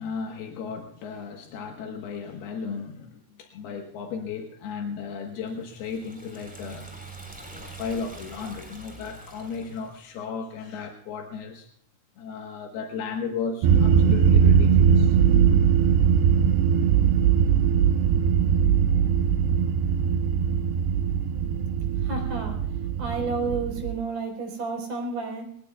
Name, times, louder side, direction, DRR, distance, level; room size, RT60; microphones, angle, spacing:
voice 1, 0.0-6.9 7.5-11.7 12.2-15.4, left 5 dB, 75° left, 2 dB, 3.3 m, -35 dB
Liquid, 5.4-10.0, right 2 dB, ahead, 3.3 m, -44 dB
sound 1, 13.6-23.9, right 7 dB, 90° right, 2.8 m, -20 dB
voice 2, 22.0-22.6 23.0-25.5, right 3 dB, 55° right, 3 dB, 5.9 m, -31 dB
22.5 x 19.5 x 2.3 m, 0.71 s
omnidirectional pair, 4.6 m